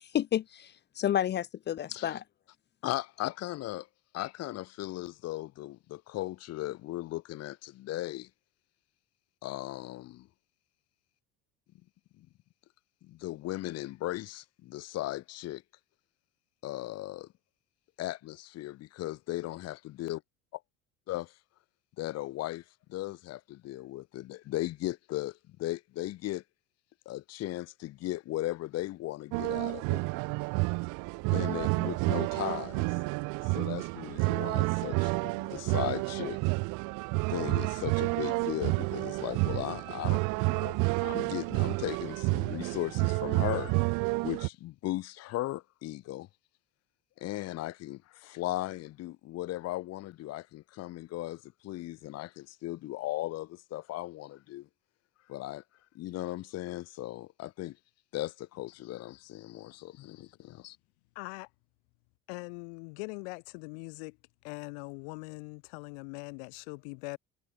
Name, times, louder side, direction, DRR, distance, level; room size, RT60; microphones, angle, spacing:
voice 1, 0.0-2.2, left 11 dB, 35° left, 0.6 m, -30 dB
voice 2, 2.8-3.9 4.1-8.3 9.4-10.3 12.2-12.3 13.0-15.6 16.6-17.3 18.0-20.2 21.1-21.3 22.0-22.6 22.9-26.4 27.0-30.0 31.3-33.0 33.5-36.4 37.3-43.8 44.2-46.3 47.2-54.7 55.3-55.6 55.9-57.8 58.1-60.8, left 16 dB, 55° left, 1.5 m, -37 dB
sound 1, 29.3-44.5, right 29 dB, 75° right, 0.9 m, -30 dB
voice 3, 61.1-61.5 62.3-64.2 64.4-67.2, left 40 dB or more, 85° left, 4.1 m, -41 dB
cardioid pair, 120°, 30 cm